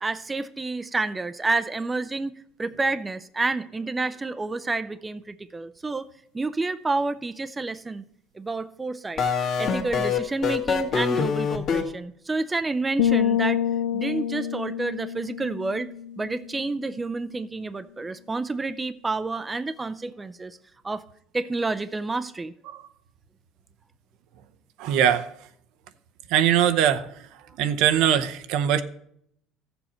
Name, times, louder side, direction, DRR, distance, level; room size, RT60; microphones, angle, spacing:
voice 1, 0.0-2.3 2.6-6.1 6.3-8.0 8.4-9.3 9.6-13.6 13.9-15.9 16.2-20.6 20.8-21.0 21.3-22.5, right 3 dB, 20° right, 0.5 m, -29 dB
sound 1, 9.2-11.8, left 6 dB, 50° left, 1.7 m, -24 dB
sound 2, 13.0-16.7, left 9 dB, 85° left, 0.5 m, -27 dB
voice 2, 24.8-25.3 26.3-27.3 27.6-28.8, right 10 dB, 75° right, 0.7 m, -22 dB
14.0 x 7.0 x 4.3 m
supercardioid pair, 105°, 0 cm